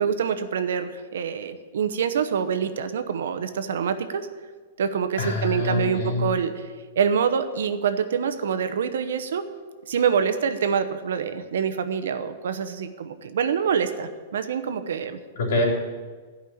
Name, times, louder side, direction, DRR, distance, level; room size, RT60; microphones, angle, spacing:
voice 1, 0.0-4.3 4.8-6.7 7.0-9.5 9.9-15.2, right 7 dB, 90° right, 9 dB, 0.9 m, -26 dB
voice 2, 5.2-6.3 15.3-15.6, left 2 dB, 70° left, -1 dB, 3.1 m, -25 dB
12.5 x 5.5 x 8.6 m, 1.5 s
supercardioid pair, 175°, 0 cm